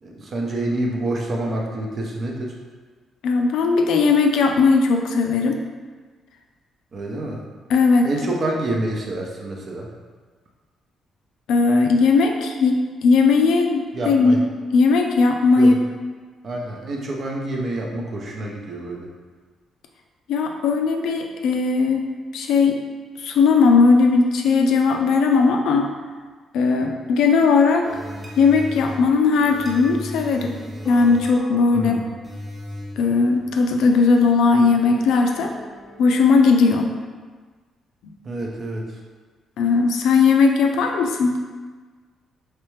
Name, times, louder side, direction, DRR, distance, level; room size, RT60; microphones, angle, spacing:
voice 1, 0.0-2.5 6.9-7.4 8.0-9.9 13.9-14.4 15.6-15.8 16.4-19.1 31.7-32.1 38.2-39.0, right 1 dB, 50° right, 0 dB, 0.7 m, -27 dB
voice 2, 3.2-5.6 7.7-8.1 11.5-14.4 14.7-15.7 20.3-22.0 22.3-22.8 23.2-25.9 26.5-27.9 28.4-30.6 30.8-32.0 33.0-35.5 36.0-36.9 39.6-41.4, left 4 dB, 80° left, 3 dB, 0.4 m, -18 dB
sound 1, 27.8-36.5, equal, 10° right, 1.1 m, -38 dB
3.3 x 3.2 x 3.2 m, 1.4 s
cardioid pair, 90°, 0 cm